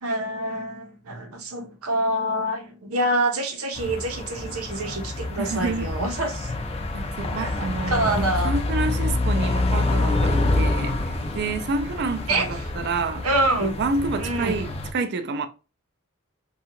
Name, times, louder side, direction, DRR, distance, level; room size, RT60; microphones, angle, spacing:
voice 1, 0.0-6.5 7.4-8.5 12.3-12.5 13.2-13.8 14.2-14.6, right 1 dB, 85° right, 0.8 m, -26 dB
sound 1, 3.7-14.9, left 2 dB, 30° left, 0.4 m, -27 dB
voice 2, 5.4-5.9 6.9-13.3 13.6-15.5, right 3 dB, 50° right, 0.4 m, -29 dB
2.7 x 2.3 x 2.8 m
head